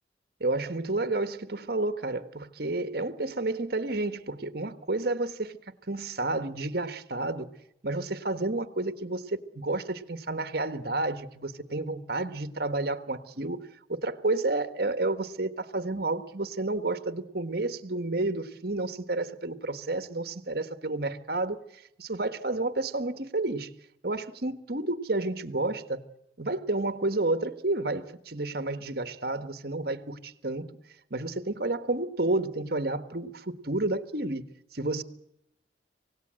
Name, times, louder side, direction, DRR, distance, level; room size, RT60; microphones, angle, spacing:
voice 1, 0.4-5.6 5.9-7.5 7.8-13.6 13.9-23.7 24.0-26.0 26.4-30.7 31.1-34.4 34.7-35.0, right 2 dB, 60° right, 1.5 m, -30 dB
26.5 x 18.0 x 7.7 m
head